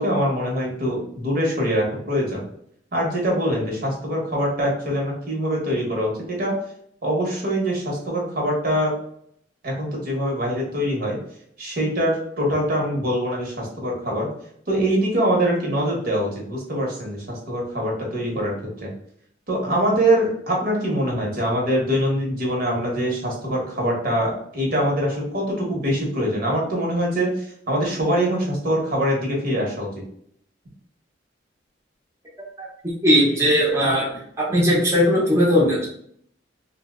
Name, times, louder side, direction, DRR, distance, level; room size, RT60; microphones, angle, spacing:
voice 1, 0.0-2.5 2.9-6.5 7.0-8.9 9.6-11.2 11.6-14.3 14.7-18.9 19.5-29.9, equal, 55° right, -1 dB, 0.9 m, -23 dB
voice 2, 32.6-34.1 34.4-35.8, equal, 15° right, -5 dB, 0.7 m, -19 dB
2.7 x 2.1 x 3.5 m, 0.66 s
head